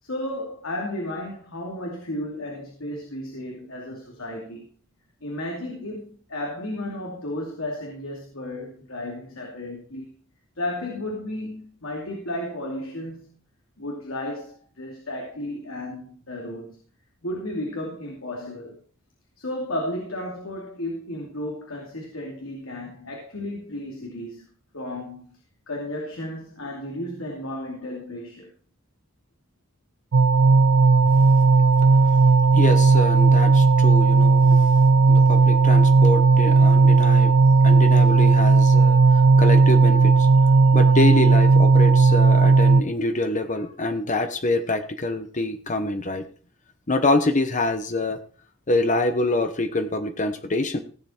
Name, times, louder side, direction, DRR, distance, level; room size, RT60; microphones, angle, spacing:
voice 1, 0.0-4.7 5.2-10.1 10.6-13.3 13.8-16.8 17.2-18.8 19.4-24.5 24.7-25.4 25.7-28.5, left 1 dB, 90° left, 0 dB, 2.7 m, -33 dB
sound 1, 30.1-42.8, right 4 dB, 85° right, 0.5 m, -15 dB
voice 2, 32.5-34.8 35.1-37.4 37.6-40.3 40.7-46.2 46.9-48.2 48.7-50.8, left 2 dB, 40° left, 8 dB, 1.0 m, -25 dB
16.0 x 7.7 x 4.5 m, 0.41 s
head